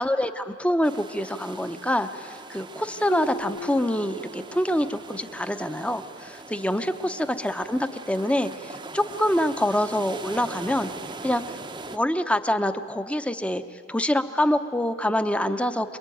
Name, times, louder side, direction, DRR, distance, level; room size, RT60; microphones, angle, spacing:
voice 1, 0.0-10.9 11.2-11.6 11.9-13.6 13.9-16.0, left 1 dB, 5° left, 10 dB, 0.7 m, -26 dB
sound 1, 0.8-12.0, right 3 dB, 25° right, 0.7 m, -41 dB
Marimba xylophone, 3.1-4.8, right 2 dB, 60° left, 1.5 m, -37 dB
26.5 x 22.5 x 9.2 m, 2.3 s
head